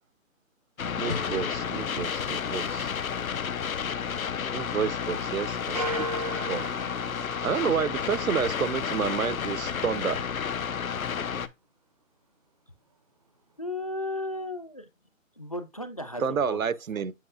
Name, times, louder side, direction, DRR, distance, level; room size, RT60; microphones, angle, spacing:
sound 1, 0.8-11.5, left 7 dB, 85° left, 0.8 m, -31 dB
voice 1, 1.0-2.9 4.5-6.1 6.5-6.7 7.4-10.2 16.2-17.1, right 7 dB, 75° right, 0.8 m, -30 dB
sound 2, 1.1-4.0, left 4 dB, 55° left, 1.3 m, -42 dB
sound 3, 5.7-8.5, right 1 dB, 30° right, 0.5 m, -36 dB
voice 2, 13.6-14.9 15.4-16.7, left 1 dB, 30° left, 0.5 m, -34 dB
7.7 x 5.6 x 2.4 m
hypercardioid pair, 160°, 41 cm